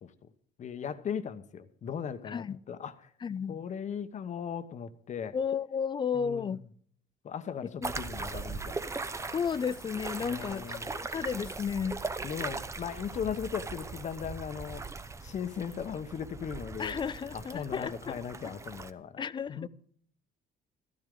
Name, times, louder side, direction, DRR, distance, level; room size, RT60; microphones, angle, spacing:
voice 1, 0.6-2.9 3.5-5.4 6.1-6.6 7.2-8.9 10.2-10.9 12.2-14.8 15.2-17.0 17.3-19.2 19.5-19.7, left 7 dB, 45° left, 1.0 m, -38 dB
voice 2, 2.2-2.6 3.2-3.6 5.3-6.6 7.8-7.9 9.3-12.0 16.8-18.2 19.2-19.7, left 6 dB, 30° left, 0.4 m, -33 dB
sound 1, 7.8-18.9, right 3 dB, 15° right, 0.7 m, -39 dB
13.5 x 12.5 x 3.8 m
cardioid pair, 110°, 17 cm